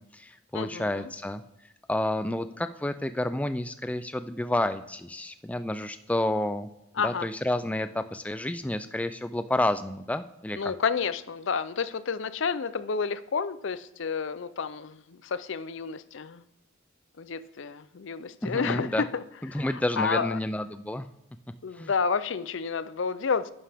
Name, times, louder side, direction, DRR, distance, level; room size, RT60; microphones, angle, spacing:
voice 1, 0.0-1.4 1.9-6.7 7.0-10.7 18.4-19.1 19.4-21.1 21.8-21.9, left 1 dB, 5° left, 11 dB, 0.3 m, -30 dB
voice 2, 0.5-1.0 7.0-7.3 10.6-16.4 17.2-19.2 19.5-19.7 20.0-20.4 21.6-23.5, left 5 dB, 65° left, 16 dB, 0.5 m, -30 dB
11.5 x 9.6 x 3.5 m, 0.88 s
head